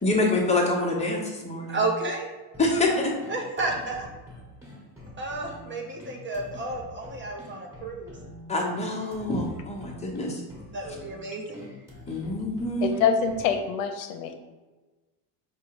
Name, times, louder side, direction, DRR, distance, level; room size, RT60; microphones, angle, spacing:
voice 1, 0.0-1.8 2.6-3.1 8.5-10.4 12.1-12.9, left 2 dB, 15° left, -2 dB, 1.0 m, -26 dB
voice 2, 1.7-2.3 3.3-4.1 5.2-8.2 10.7-11.7, right 2 dB, 25° right, 0 dB, 0.7 m, -31 dB
sound 1, 2.5-13.5, left 1 dB, 5° right, 1.5 m, -46 dB
voice 3, 12.8-14.4, left 7 dB, 80° left, 6 dB, 0.7 m, -26 dB
4.6 x 2.3 x 4.7 m, 1.2 s
cardioid pair, 120°, 47 cm